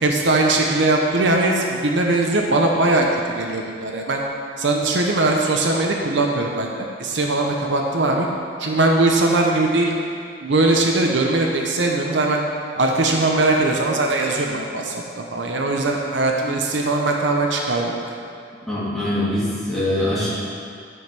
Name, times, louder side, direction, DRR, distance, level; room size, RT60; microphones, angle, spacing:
voice 1, 0.0-4.2 4.6-8.3 8.6-10.0 10.4-12.4 12.8-18.0, right 2 dB, 70° right, 1 dB, 0.9 m, -20 dB
voice 2, 18.7-20.3, left 1 dB, ahead, -11 dB, 2.8 m, -23 dB
11.0 x 5.4 x 6.0 m, 2.3 s
head